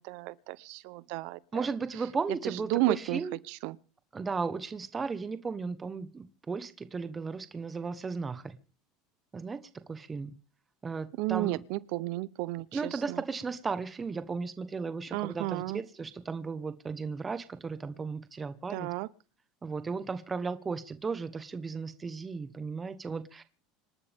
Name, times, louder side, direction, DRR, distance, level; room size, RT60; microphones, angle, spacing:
voice 1, 0.0-1.7 2.3-3.2 3.5-3.8 11.2-13.2 15.1-15.8 18.7-19.1, right 20 dB, 70° right, 0.7 m, -33 dB
voice 2, 1.5-3.4 4.1-8.6 9.3-9.6 9.9-10.3 10.8-11.6 12.7-18.9 19.6-23.4, right 4 dB, 20° right, 1.2 m, -35 dB
26.5 x 12.0 x 3.6 m
supercardioid pair, 125°, 0 cm